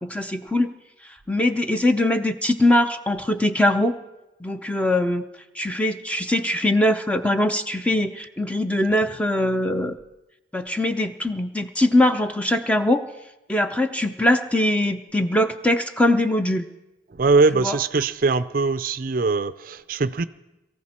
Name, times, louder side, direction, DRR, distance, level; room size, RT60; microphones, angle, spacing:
voice 1, 0.0-0.7 1.3-4.0 4.4-5.2 5.5-9.9 10.5-13.0 13.5-16.7 17.6-17.7, left 1 dB, 5° left, 7 dB, 0.6 m, -22 dB
voice 2, 17.1-20.3, right 3 dB, 45° right, 14 dB, 0.4 m, -21 dB
22.5 x 14.5 x 4.4 m, 0.98 s
head